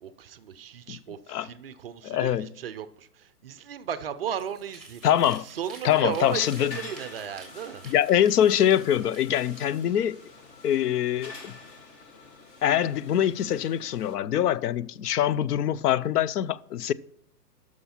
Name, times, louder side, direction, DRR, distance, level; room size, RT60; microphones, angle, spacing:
voice 1, 0.0-5.0 5.4-7.8, right 9 dB, 40° right, 0.4 m, -36 dB
voice 2, 2.0-2.5 5.0-5.5 5.8-6.8 7.8-10.2 10.6-11.6 12.6-16.9, left 10 dB, 70° left, 0.6 m, -24 dB
sound 1, 4.3-9.9, right 3 dB, ahead, 2.0 m, -51 dB
sound 2, 6.2-14.2, left 3 dB, 30° left, 1.3 m, -47 dB
11.0 x 6.3 x 4.3 m
hypercardioid pair, 145°, 48 cm